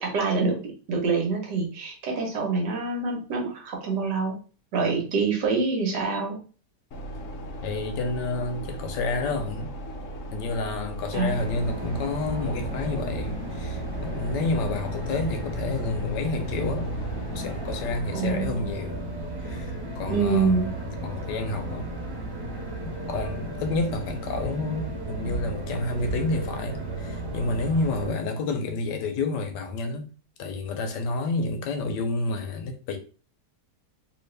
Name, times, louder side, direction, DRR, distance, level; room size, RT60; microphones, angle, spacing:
voice 1, 0.0-4.4 4.7-6.4 11.1-11.4 18.1-18.6 20.1-20.7, right 4 dB, 75° right, 1.7 m, -26 dB
sound 1, 6.9-18.0, right 1 dB, 65° left, 0.8 m, -37 dB
voice 2, 7.6-9.7 10.3-16.9 17.3-19.0 19.4-20.6 21.0-21.9 22.8-30.1 30.4-33.0, left 3 dB, 85° left, 1.3 m, -29 dB
sound 2, 11.2-28.1, right 1 dB, 15° right, 1.1 m, -33 dB
3.6 x 2.8 x 3.2 m
omnidirectional pair, 1.8 m